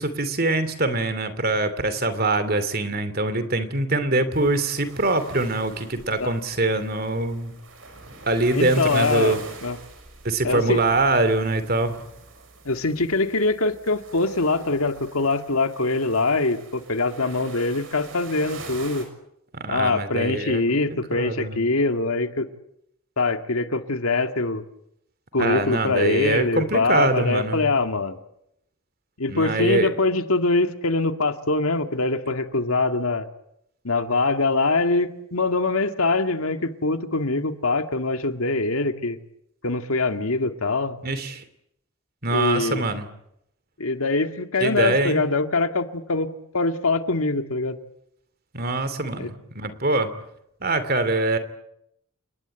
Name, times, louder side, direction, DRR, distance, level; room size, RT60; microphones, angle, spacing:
voice 1, 0.0-7.5 8.3-9.4 10.2-12.0 19.5-20.6 20.9-21.6 25.4-27.7 29.3-29.9 41.0-41.4 42.2-43.1 44.6-45.2 48.5-50.1 50.6-51.4, right 2 dB, 45° right, 12 dB, 2.8 m, -23 dB
sound 1, 4.3-19.1, right 3 dB, 65° right, 6.4 m, -43 dB
voice 2, 8.5-9.8 10.4-10.8 12.7-19.1 19.7-22.5 23.2-24.6 25.3-28.2 29.2-33.3 33.8-39.2 39.6-41.0 42.3-42.9 43.8-47.8 49.2-49.3, left 3 dB, 80° left, 7 dB, 2.1 m, -23 dB
29.5 x 19.5 x 9.0 m, 0.78 s
head